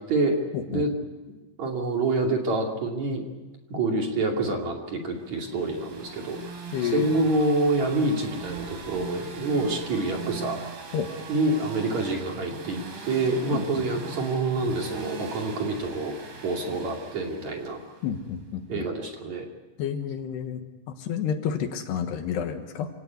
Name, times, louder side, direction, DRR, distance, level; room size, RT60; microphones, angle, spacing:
voice 1, 0.5-0.8 6.7-7.1 10.9-11.1 13.5-13.8 18.0-18.9 19.8-22.9, left 8 dB, 70° left, 7 dB, 3.3 m, -30 dB
voice 2, 1.6-3.2 3.7-6.4 6.8-10.6 11.3-16.1 16.4-17.8 18.7-19.5, right 2 dB, 45° right, 1 dB, 3.4 m, -27 dB
sound 1, 5.3-18.2, right 5 dB, 65° right, 5.8 m, -40 dB
27.0 x 17.5 x 9.5 m, 1.2 s
omnidirectional pair, 5.2 m